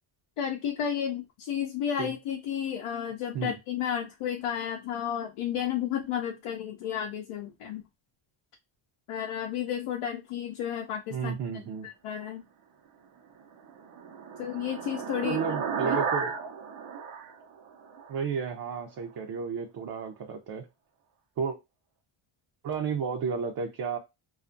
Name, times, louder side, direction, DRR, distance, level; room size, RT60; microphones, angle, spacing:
voice 1, 0.4-7.8 9.1-11.3 11.8-12.4 14.4-15.4 15.8-16.0, left 9 dB, 85° left, 0.6 m, -32 dB
voice 2, 11.1-11.9 15.2-16.3 18.1-20.7 21.4-21.6 22.6-24.0, right 6 dB, 50° right, 0.5 m, -32 dB
sound 1, 13.4-18.2, right 6 dB, 85° right, 0.7 m, -33 dB
2.4 x 2.4 x 2.5 m
cardioid pair, 115°, 50 cm